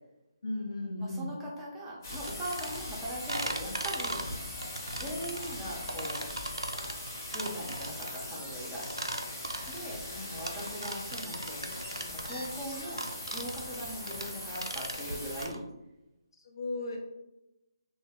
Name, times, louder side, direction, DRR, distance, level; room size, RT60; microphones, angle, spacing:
voice 1, 0.4-1.3 5.1-5.2 16.4-17.0, left 2 dB, 65° left, 0 dB, 0.7 m, -35 dB
voice 2, 1.0-4.2 4.9-6.2 7.3-8.9 9.7-11.6 12.0-15.6, equal, 10° right, -6 dB, 0.6 m, -40 dB
sound 1, 2.0-15.5, left 1 dB, 40° left, 0.9 m, -41 dB
sound 2, 2.1-15.6, right 1 dB, 90° right, 0.3 m, -39 dB
2.1 x 2.1 x 3.4 m, 0.94 s
figure-of-eight pair, 150°, 2 cm